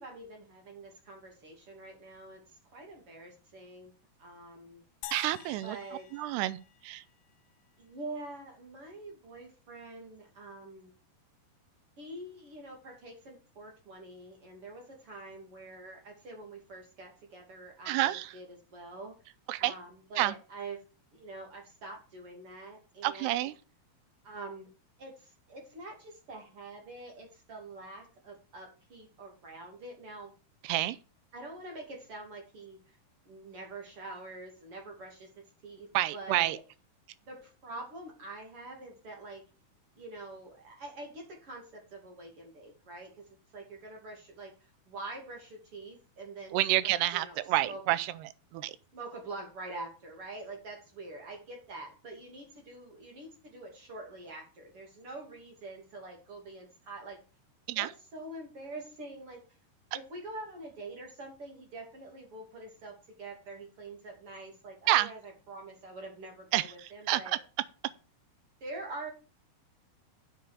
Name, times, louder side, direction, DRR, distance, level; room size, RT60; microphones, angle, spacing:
voice 1, 0.0-3.9 4.2-4.8 5.6-6.1 7.8-10.9 12.0-19.2 19.6-20.8 21.1-23.3 24.2-24.7 25.0-30.3 31.3-33.0 33.3-35.3 35.6-36.6 37.3-39.4 40.0-43.1 43.5-46.6 46.8-47.8 48.9-57.2 57.7-59.4 59.9-67.4 68.6-69.1, right 2 dB, 40° right, 3.0 m, -45 dB
sound 1, 5.0-7.5, left 15 dB, 80° left, 2.6 m, -48 dB
voice 2, 5.1-5.8 6.1-6.6 6.8-7.0 17.9-18.3 19.5-19.7 20.2-20.4 23.0-23.5 30.6-31.0 35.9-36.6 46.5-48.1 48.5-48.8 57.7-57.9 64.9-65.1 66.5-66.7 67.1-67.2, right 15 dB, 85° right, 2.7 m, -28 dB
7.9 x 6.9 x 6.6 m
omnidirectional pair, 4.7 m